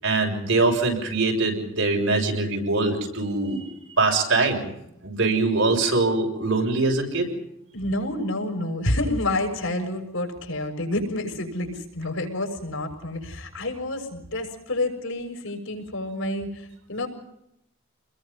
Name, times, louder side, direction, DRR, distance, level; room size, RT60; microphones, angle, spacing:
voice 1, 0.0-3.6 4.0-4.7 5.0-7.3, right 3 dB, 70° right, 2 dB, 6.9 m, -23 dB
voice 2, 7.7-17.1, left 1 dB, 80° left, 4 dB, 6.7 m, -29 dB
28.5 x 21.5 x 5.6 m, 0.81 s
head